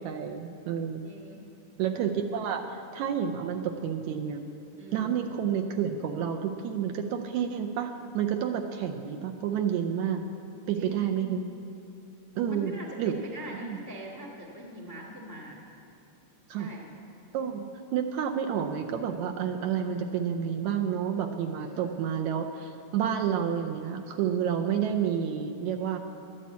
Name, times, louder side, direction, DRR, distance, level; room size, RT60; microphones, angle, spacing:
voice 1, 0.0-1.1 1.8-4.4 4.9-10.3 10.7-11.4 12.4-13.2 13.6-13.8 16.5-16.7 17.3-17.7 17.9-26.0, right 8 dB, 75° right, 4 dB, 1.8 m, -30 dB
voice 2, 1.0-1.4 4.8-5.2 10.7-11.1 12.5-15.6 16.5-16.9 21.6-21.9, equal, 20° left, -2 dB, 0.4 m, -42 dB
12.5 x 8.6 x 8.2 m, 2.6 s
omnidirectional pair, 3.7 m